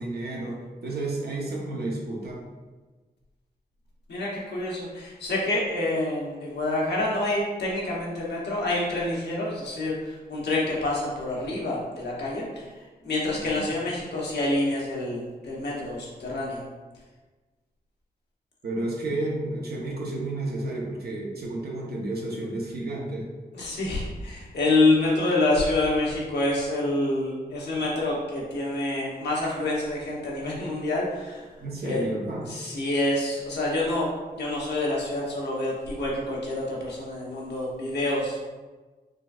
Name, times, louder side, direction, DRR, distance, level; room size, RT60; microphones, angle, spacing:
voice 1, 0.0-2.4 13.4-13.6 18.6-23.3 31.6-32.4, right 2 dB, 70° right, -2 dB, 0.8 m, -31 dB
voice 2, 4.1-12.6 13.0-16.6 23.5-31.4 31.8-32.0 32.5-38.4, left 2 dB, 85° left, -4 dB, 0.9 m, -27 dB
3.8 x 2.4 x 2.3 m, 1.3 s
cardioid pair, 55°, 17 cm